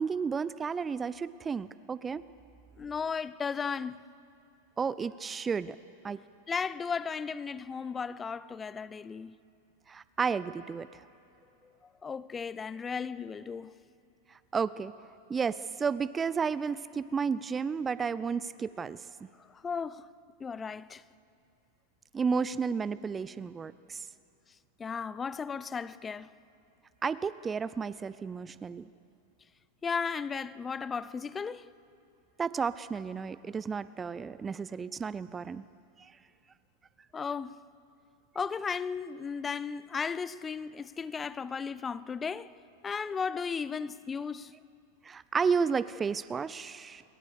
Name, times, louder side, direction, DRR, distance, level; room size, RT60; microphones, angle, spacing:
voice 1, 0.0-2.2 4.8-5.8 6.0-6.2 9.9-10.9 14.5-14.9 15.3-19.0 22.1-24.0 27.0-28.8 32.4-35.6 36.0-36.1 45.0-47.0, right 5 dB, 20° right, 0.5 m, -32 dB
voice 2, 2.8-4.0 6.5-9.3 12.0-13.7 19.5-20.1 20.4-21.0 24.8-26.3 29.8-31.7 37.1-37.6 38.3-42.5 42.8-44.5, left 6 dB, 20° left, 0.6 m, -35 dB
28.0 x 22.5 x 6.7 m
figure-of-eight pair, 95°, 0 cm